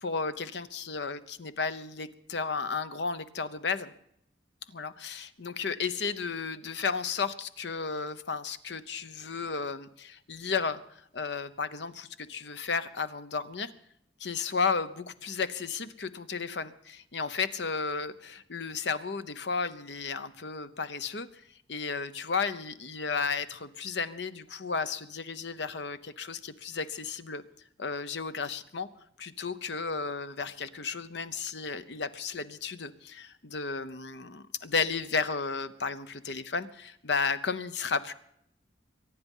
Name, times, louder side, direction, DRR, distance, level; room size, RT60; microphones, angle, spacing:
voice 1, 0.0-3.9 4.7-13.7 14.2-21.4 21.7-27.4 27.8-28.9 29.2-38.1, left 5 dB, 65° left, 12 dB, 0.9 m, -33 dB
23.5 x 9.6 x 5.5 m, 0.74 s
head